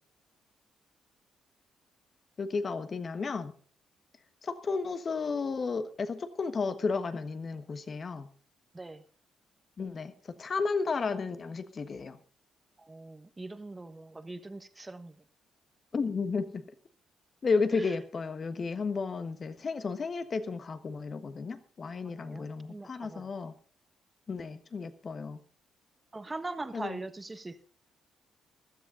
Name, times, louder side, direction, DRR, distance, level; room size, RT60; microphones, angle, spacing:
voice 1, 2.4-3.5 4.4-8.3 9.8-10.1 10.4-12.2 15.9-16.6 17.4-23.5 24.3-25.4 26.7-27.0, left 4 dB, 40° left, 11 dB, 1.4 m, -33 dB
voice 2, 12.8-15.2 17.7-17.9 22.2-23.3 26.1-27.6, right 2 dB, 20° right, 11 dB, 1.3 m, -42 dB
15.5 x 12.5 x 3.8 m, 0.41 s
cardioid pair, 90°, 0 cm